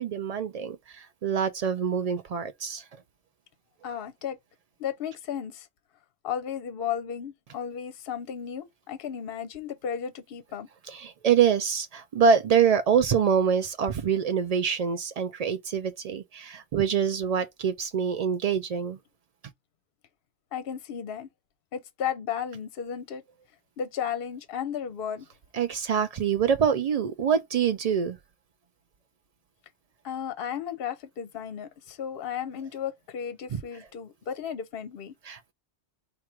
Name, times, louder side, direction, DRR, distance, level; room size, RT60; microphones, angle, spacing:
voice 1, 0.0-2.9 10.9-19.0 25.5-28.2 33.5-33.6 35.3-35.5, right 7 dB, 75° right, 0.3 m, -25 dB
voice 2, 3.8-4.4 4.8-5.7 6.2-10.7 20.5-21.3 21.7-23.2 23.8-25.3 30.0-35.2, left 8 dB, 60° left, 0.8 m, -34 dB
4.7 x 2.5 x 4.4 m
omnidirectional pair, 1.2 m